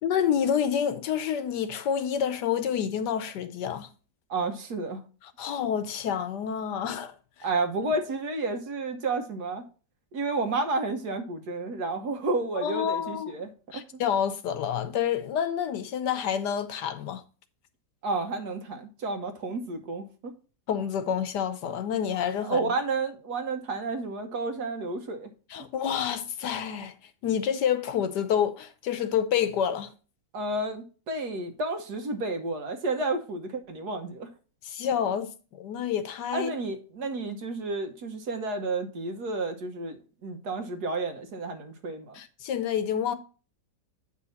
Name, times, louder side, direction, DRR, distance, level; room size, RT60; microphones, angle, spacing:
voice 1, 0.0-3.9 5.4-7.2 12.6-13.3 13.7-17.2 20.7-22.7 25.5-26.9 27.2-29.9 34.6-36.5 42.1-43.1, left 8 dB, 70° left, 1.3 m, -28 dB
voice 2, 4.3-5.0 7.4-9.6 10.1-14.0 18.0-20.3 22.4-25.3 30.3-34.3 36.3-42.2, right 3 dB, 65° right, 1.7 m, -31 dB
8.6 x 5.6 x 4.0 m
omnidirectional pair, 1.9 m